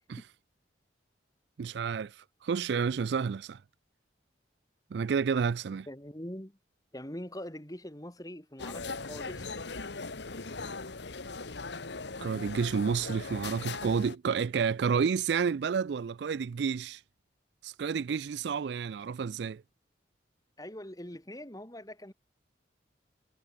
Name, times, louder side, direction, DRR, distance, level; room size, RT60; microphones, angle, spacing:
voice 1, 1.6-2.1 2.4-3.6 4.9-5.9 12.2-17.0 17.6-19.6, right 6 dB, 65° right, 0.4 m, -30 dB
voice 2, 5.9-6.6 6.9-9.6 20.6-22.1, left 1 dB, 20° left, 2.3 m, -43 dB
sound 1, 8.6-14.2, left 4 dB, 70° left, 1.5 m, -39 dB
head